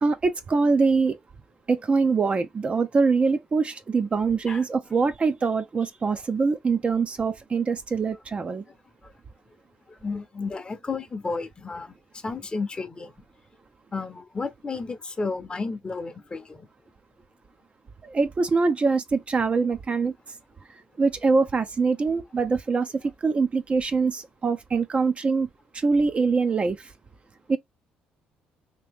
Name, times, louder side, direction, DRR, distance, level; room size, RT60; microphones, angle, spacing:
voice 1, 0.0-1.2 1.7-8.6 18.0-20.1 21.0-22.9 23.2-25.5 25.7-26.8 27.5-27.6, right 4 dB, 35° right, 0.6 m, -23 dB
voice 2, 9.9-13.1 13.9-16.7, left 4 dB, 25° left, 0.8 m, -32 dB
2.9 x 2.7 x 3.5 m
supercardioid pair, 75°, 4 cm